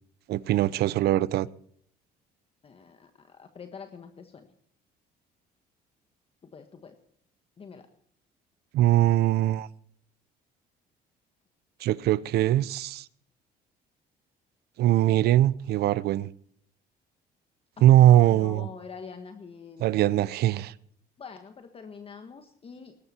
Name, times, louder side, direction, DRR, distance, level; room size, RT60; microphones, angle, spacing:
voice 1, 0.3-1.5 8.7-9.7 11.8-13.1 14.8-16.3 17.8-18.7 19.8-20.7, right 13 dB, 70° right, 0.7 m, -21 dB
voice 2, 2.6-4.5 6.5-7.0 7.6-7.9 17.8-20.1 21.2-23.0, left 5 dB, 35° left, 1.5 m, -45 dB
18.5 x 12.5 x 4.4 m
cardioid pair, 110°, 17 cm